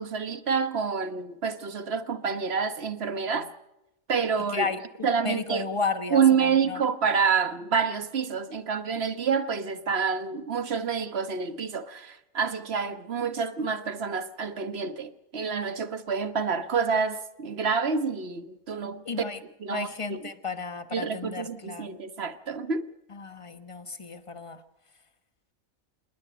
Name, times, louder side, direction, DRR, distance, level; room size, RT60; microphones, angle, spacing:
voice 1, 0.0-3.5 4.1-4.7 5.0-5.7 6.1-19.0 19.6-20.3 20.9-22.8, right 6 dB, 50° right, 1.3 m, -28 dB
voice 2, 4.5-6.8 19.0-19.4 19.7-22.0 23.1-24.6, left 4 dB, 25° left, 1.1 m, -33 dB
27.5 x 20.5 x 5.1 m
omnidirectional pair, 1.4 m